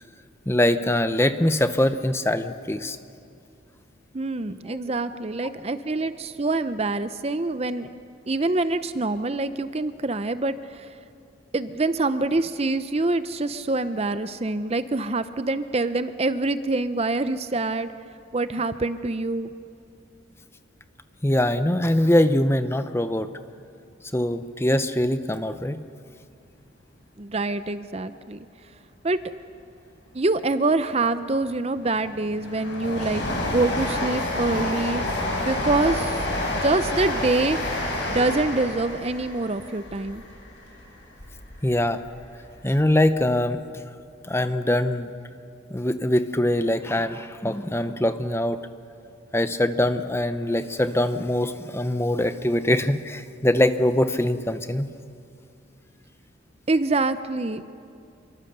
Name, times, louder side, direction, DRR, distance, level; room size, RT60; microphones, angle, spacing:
voice 1, 0.5-3.0 4.7-4.8 21.2-23.3 24.1-25.8 41.6-42.0 42.6-43.8 44.2-45.1 45.7-48.6 49.3-54.9, left 1 dB, 10° left, 10 dB, 0.7 m, -23 dB
voice 2, 4.1-7.9 8.3-10.9 11.5-17.9 18.3-19.5 27.2-28.4 29.0-29.2 30.1-33.3 33.5-35.0 35.4-36.2 36.5-37.8 38.1-40.2 56.7-57.6, right 2 dB, 30° right, 12 dB, 0.6 m, -25 dB
Train, 31.4-41.6 42.0-42.9 43.2-43.3, left 1 dB, 55° left, 6.6 m, -29 dB
27.0 x 23.5 x 6.7 m, 2.4 s
head